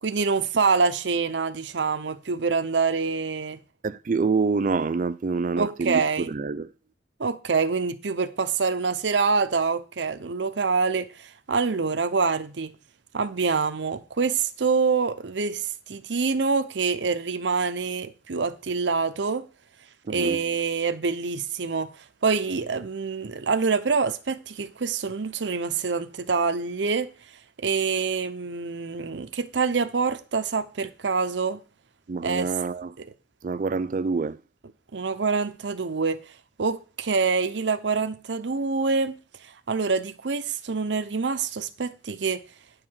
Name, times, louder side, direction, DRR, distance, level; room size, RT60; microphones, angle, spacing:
voice 1, 0.0-3.6 5.6-6.3 7.2-12.7 13.1-19.5 20.1-27.1 27.6-31.6 32.2-32.5 33.0-33.1 34.9-36.2 36.6-39.2 39.4-42.4, right 4 dB, 90° right, 0.7 m, -26 dB
voice 2, 3.8-6.7 20.1-20.4 32.1-32.9 33.4-34.4, right 4 dB, 45° right, 0.4 m, -26 dB
9.5 x 4.8 x 7.4 m
head